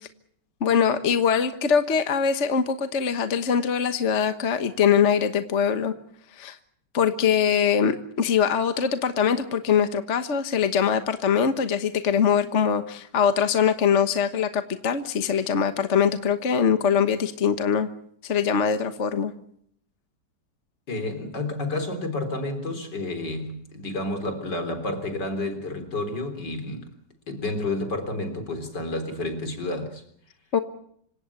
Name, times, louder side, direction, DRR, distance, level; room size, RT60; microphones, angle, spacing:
voice 1, 0.6-5.9 6.4-6.6 6.9-17.9 18.2-19.3 30.5-30.6, left 7 dB, 45° left, 1.5 m, -22 dB
voice 2, 20.9-26.9 27.3-30.0, left 2 dB, 80° left, 4.3 m, -30 dB
26.5 x 17.0 x 8.5 m
omnidirectional pair, 1.8 m